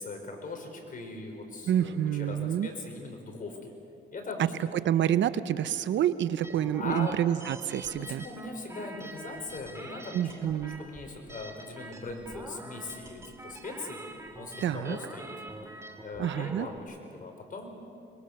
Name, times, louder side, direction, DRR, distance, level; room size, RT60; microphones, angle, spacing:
voice 1, 0.0-3.7 4.1-4.7 6.8-7.2 7.9-10.3 10.6-14.0 14.4-15.5 16.0-17.7, left 3 dB, 45° left, 3 dB, 5.3 m, -40 dB
voice 2, 1.7-2.7 4.7-8.2 10.1-10.8 14.6-15.0 16.2-16.7, right 10 dB, 65° right, 13 dB, 0.9 m, -28 dB
sound 1, 6.4-16.8, right 2 dB, 15° right, 2.6 m, -45 dB
25.0 x 22.0 x 6.8 m, 2.7 s
cardioid pair, 90°, 20 cm